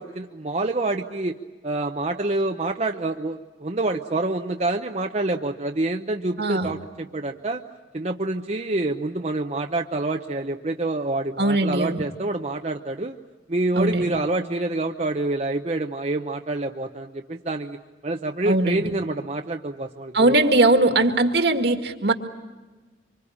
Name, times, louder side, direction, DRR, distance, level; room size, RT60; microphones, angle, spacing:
voice 1, 0.0-1.4 1.6-7.6 7.9-13.2 13.5-17.8 18.0-20.3, right 2 dB, 35° right, 3 dB, 0.8 m, -27 dB
voice 2, 6.4-6.7 11.4-12.0 13.8-14.2 18.5-18.9 20.1-22.1, right 2 dB, 70° right, 5 dB, 2.0 m, -20 dB
25.5 x 25.5 x 8.6 m, 1.3 s
head